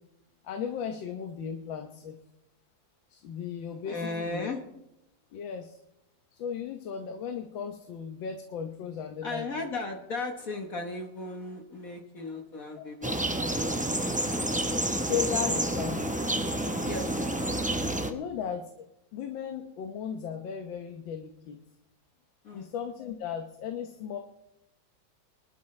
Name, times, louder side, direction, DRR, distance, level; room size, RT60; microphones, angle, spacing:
voice 1, 0.4-2.1 3.1-4.5 5.3-5.8 6.3-9.5 12.8-12.9 15.0-16.1 18.0-18.8 19.1-21.6 22.5-24.2, left 7 dB, 90° left, 5 dB, 1.7 m, -36 dB
voice 2, 3.8-4.6 9.2-14.3 16.8-17.2 22.4-22.7, left 3 dB, 50° left, 3 dB, 1.5 m, -36 dB
sound 1, 13.0-18.1, right 1 dB, 10° right, 0.3 m, -29 dB
24.0 x 12.5 x 3.2 m, 0.89 s
omnidirectional pair, 2.0 m